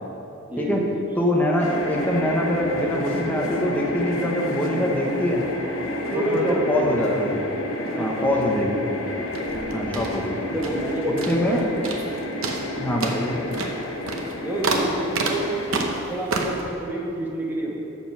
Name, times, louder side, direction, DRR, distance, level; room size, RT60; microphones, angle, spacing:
voice 1, 0.5-1.0 6.1-7.1 7.8-8.6 9.5-9.9 10.4-11.9 14.4-15.5 16.1-17.8, right 1 dB, 10° right, -3 dB, 1.2 m, -28 dB
voice 2, 1.2-5.4 6.1-7.4 8.0-8.8 9.7-10.4 11.0-11.6 12.8-13.5, left 1 dB, 10° left, -1 dB, 0.9 m, -24 dB
sound 1, 1.6-16.0, left 1 dB, 80° left, 0.9 m, -30 dB
sound 2, 9.3-10.9 11.2-11.6 11.8-12.1 12.4-16.7, right 3 dB, 85° right, 0.9 m, -29 dB
7.4 x 6.9 x 5.9 m, 2.9 s
head